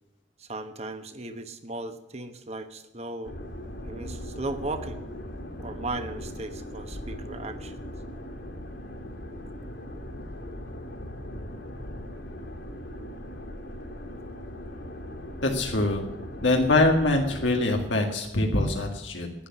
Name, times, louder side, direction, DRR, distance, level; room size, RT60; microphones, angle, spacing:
voice 1, 0.4-3.4 3.8-5.0 5.6-7.7, right 2 dB, 35° right, 9 dB, 1.2 m, -36 dB
sound 1, 3.2-17.6, left 1 dB, 70° left, 3.5 m, -39 dB
voice 2, 15.4-16.1 16.4-19.3, left 2 dB, 85° left, 1 dB, 2.0 m, -24 dB
11.5 x 9.8 x 9.8 m, 0.93 s
head